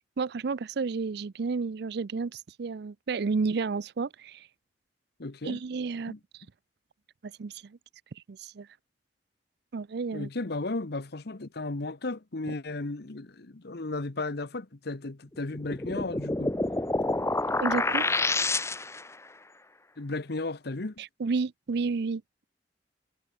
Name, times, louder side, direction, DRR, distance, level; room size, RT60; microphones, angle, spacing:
voice 1, 0.2-4.5 5.4-6.1 7.2-7.8 8.2-8.7 9.7-10.3 17.6-18.1 21.0-22.4, right 4 dB, 65° right, 0.5 m, -31 dB
voice 2, 5.2-5.6 6.1-6.2 10.1-16.6 20.0-20.9, left 2 dB, 65° left, 1.1 m, -34 dB
sound 1, 15.5-19.1, left 2 dB, 15° left, 1.1 m, -28 dB
head